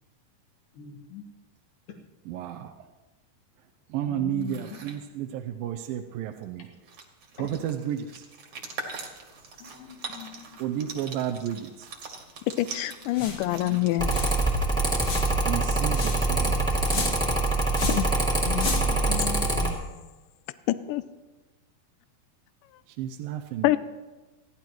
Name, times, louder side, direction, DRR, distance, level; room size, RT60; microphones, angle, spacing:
voice 1, 0.7-1.2 4.0-4.8 7.4-7.5 9.6-10.6 13.3-13.8 14.1-14.2 14.7-14.9 18.4-20.0, left 6 dB, 70° left, 1 dB, 3.4 m, -39 dB
voice 2, 2.3-2.9 3.9-6.7 7.4-8.3 10.6-11.9 15.5-16.8 22.9-23.8, right 10 dB, 80° right, 5 dB, 2.3 m, -32 dB
sound 1, 4.3-5.0 6.4-6.5 6.7-16.3, right 4 dB, 50° right, 2.4 m, -43 dB
voice 3, 12.5-14.1 17.9-18.1 20.7-21.0 23.6-23.8, left 16 dB, 85° left, 14 dB, 1.8 m, -25 dB
sound 2, 13.1-13.5 13.8-13.9 14.0-14.4 15.0-15.4 15.9-16.3 16.8-17.3 17.7-18.1 18.5-19.0, left 4 dB, 40° left, 2.0 m, -33 dB
Mechanical fan, 14.0-19.7, right 2 dB, ahead, 1.3 m, -24 dB
29.5 x 11.0 x 3.1 m, 1.2 s
omnidirectional pair, 4.3 m